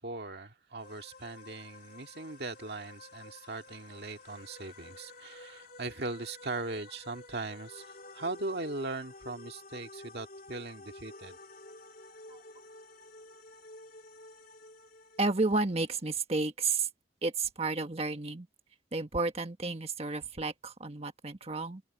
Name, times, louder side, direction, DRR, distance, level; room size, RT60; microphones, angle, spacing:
voice 1, 0.0-11.4, right 2 dB, 65° right, 2.1 m, -39 dB
sound 1, 0.8-16.2, left 2 dB, 50° left, 3.3 m, -51 dB
voice 2, 15.2-16.9 17.2-18.5 18.9-21.8, right 3 dB, 35° right, 1.5 m, -31 dB
head